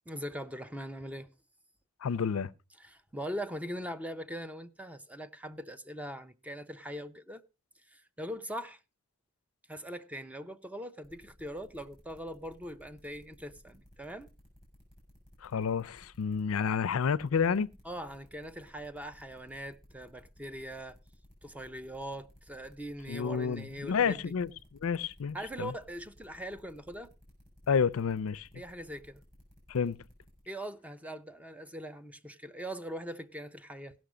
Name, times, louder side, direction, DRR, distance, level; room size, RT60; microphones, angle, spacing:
voice 1, 0.1-1.3 2.8-7.4 7.9-8.8 9.7-14.3 17.8-21.0 21.4-24.3 25.3-27.1 28.5-29.2 30.5-33.9, equal, 5° right, 0.5 m, -41 dB
voice 2, 2.0-2.5 15.4-17.7 23.1-24.5 24.8-25.7 27.7-28.5 29.7-30.0, left 6 dB, 80° left, 0.5 m, -30 dB
sound 1, 11.0-30.4, left 1 dB, 25° right, 6.1 m, -59 dB
16.5 x 6.2 x 4.9 m
head